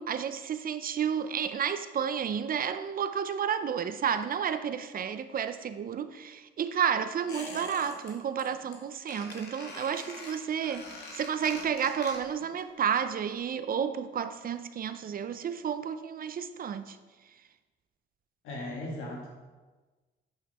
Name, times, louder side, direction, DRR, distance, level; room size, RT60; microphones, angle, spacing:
voice 1, 0.0-10.8 11.1-17.0, right 8 dB, 45° right, 0.5 m, -31 dB
Squeak, 7.3-8.1 8.4-8.8 9.1-12.5 12.7-12.8, left 2 dB, 60° left, 1.9 m, -44 dB
voice 2, 18.4-19.3, left 1 dB, 90° left, 2.0 m, -37 dB
9.0 x 5.4 x 4.2 m
cardioid pair, 90°, 20 cm